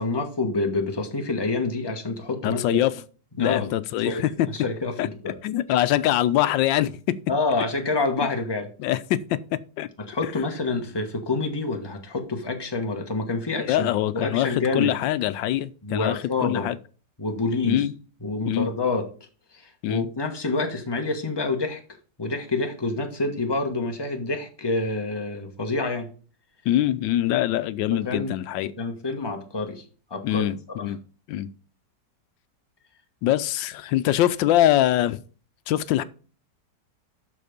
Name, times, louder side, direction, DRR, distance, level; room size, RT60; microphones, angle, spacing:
voice 1, 0.0-2.8 3.4-3.7 4.0-5.4 7.3-8.7 10.0-15.0 15.8-16.7 17.2-17.9 18.2-19.1 19.5-21.8 22.2-26.1 27.9-28.3 28.8-29.8 30.1-30.4 30.8-30.9, left 3 dB, 15° left, 1.3 m, -27 dB
voice 2, 2.4-2.9 3.4-4.5 5.0-5.1 5.4-7.1 8.8-9.9 13.6-16.7 17.6-17.9 18.5-18.7 19.8-20.1 26.7-28.7 30.2-31.0 31.3-31.5 33.2-35.2 35.7-36.0, left 13 dB, 90° left, 1.3 m, -23 dB
12.5 x 4.3 x 5.1 m
omnidirectional pair, 2.0 m